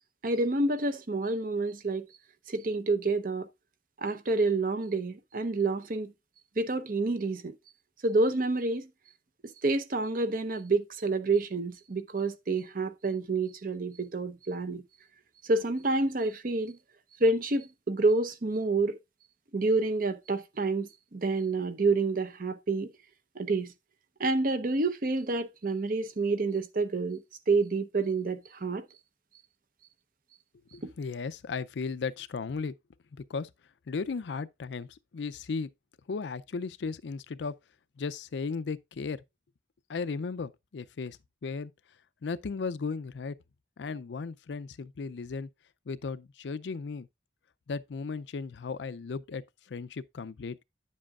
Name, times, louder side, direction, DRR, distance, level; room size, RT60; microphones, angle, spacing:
voice 1, 0.2-2.0 2.5-3.5 4.0-6.1 6.6-7.5 8.0-8.9 9.6-14.8 15.5-16.8 17.2-19.0 19.5-22.9 23.4-23.7 24.2-27.2 27.5-28.8, right 3 dB, 50° right, 0.7 m, -28 dB
voice 2, 30.7-32.7 33.3-33.5 33.9-35.7 36.1-37.6 38.0-39.2 39.9-41.2 41.4-41.7 42.2-43.3 43.8-45.5 45.9-47.1 47.7-50.6, left 4 dB, 80° left, 0.5 m, -35 dB
9.6 x 7.5 x 2.4 m
head